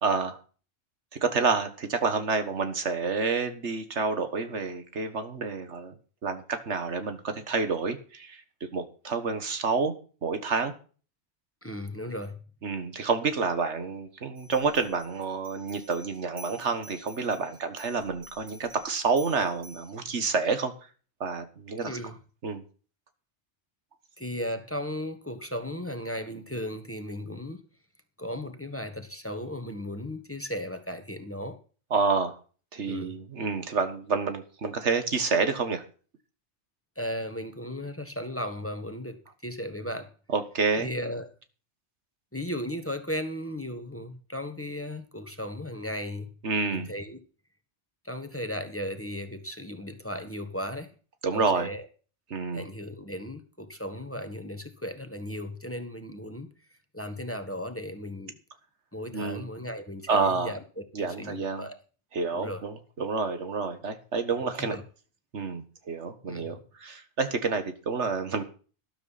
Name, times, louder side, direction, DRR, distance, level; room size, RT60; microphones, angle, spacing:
voice 1, 0.0-0.4 1.2-6.0 6.2-10.7 12.6-20.7 21.2-22.0 22.4-22.6 31.9-32.4 32.7-35.8 40.3-40.9 46.4-46.9 51.2-51.7 52.3-52.7 59.1-59.4 60.1-60.5 60.9-61.7 62.1-64.8 65.3-68.4, right 4 dB, 90° right, 9 dB, 1.8 m, -29 dB
voice 2, 11.6-12.4 21.8-22.2 24.2-27.6 28.2-31.6 32.8-33.1 36.9-40.1 40.8-41.3 42.3-46.3 46.7-47.2 48.0-50.9 51.3-51.9 52.5-56.5 56.9-58.3 58.9-61.8 62.3-62.6 64.4-64.8 66.3-66.5, left 1 dB, 10° left, 7 dB, 1.4 m, -36 dB
sound 1, 14.4-20.0, right 1 dB, 55° right, 5.0 m, -51 dB
13.0 x 12.0 x 4.2 m, 0.39 s
omnidirectional pair, 1.1 m